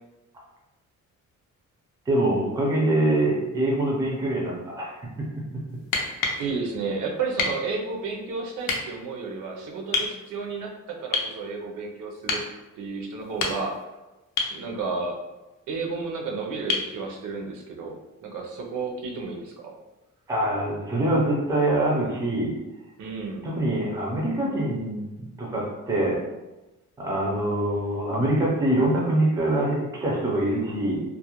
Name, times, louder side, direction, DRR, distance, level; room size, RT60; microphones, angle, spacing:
voice 1, 2.1-5.5 20.3-22.5 23.4-26.2 27.0-31.0, right 1 dB, 10° right, -2 dB, 0.4 m, -24 dB
sound 1, 5.8-6.4 7.4-7.6 8.6-8.8 9.9-10.1 11.1-11.4 12.3-12.5 13.2-13.8 14.4-14.6 16.7-16.9 18.8-18.9, left 4 dB, 85° left, 0.5 m, -27 dB
voice 2, 6.4-12.4 12.7-13.7 14.5-15.2 15.7-19.7 23.0-23.4, right 4 dB, 70° right, 1 dB, 0.5 m, -32 dB
2.3 x 2.0 x 2.9 m, 1.0 s
cardioid pair, 155°, 32 cm